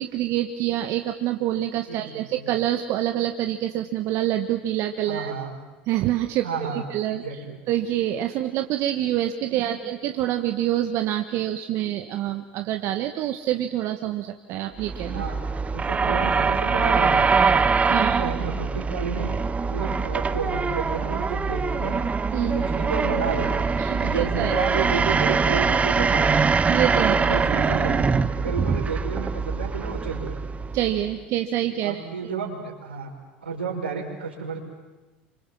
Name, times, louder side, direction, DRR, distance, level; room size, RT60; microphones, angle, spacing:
voice 1, 0.0-5.3 5.9-7.2 7.7-15.2 17.9-18.3 22.3-22.5 23.8-24.6 26.7-27.2 30.7-32.3, right 12 dB, 55° right, 6 dB, 1.6 m, -26 dB
voice 2, 5.1-5.5 6.4-7.6 9.6-9.8 15.1-15.4 15.7-17.5 17.9-19.3 19.6-22.0 22.4-23.6 23.9-26.5 27.0-30.4 31.8-33.1 33.4-34.6, right 5 dB, 85° right, 0 dB, 5.5 m, -31 dB
sound 1, 14.8-31.1, right 5 dB, 25° right, 1.3 m, -23 dB
28.5 x 26.0 x 7.6 m, 1.2 s
hypercardioid pair, 70°, 6 cm